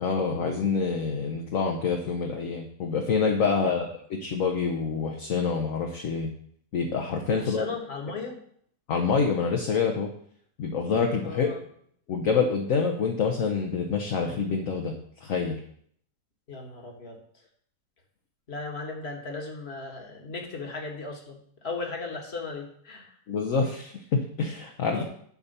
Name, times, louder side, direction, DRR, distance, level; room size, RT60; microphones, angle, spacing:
voice 1, 0.0-6.3 6.7-7.6 8.9-10.1 10.6-11.5 12.1-14.9 15.2-15.6 23.3-25.0, left 5 dB, 60° left, 2 dB, 1.3 m, -26 dB
voice 2, 3.5-3.9 7.4-8.4 11.2-11.6 16.5-17.2 18.5-23.1 24.9-25.0, left 3 dB, 40° left, 1 dB, 1.8 m, -37 dB
9.9 x 4.3 x 6.7 m, 0.63 s
omnidirectional pair, 1.7 m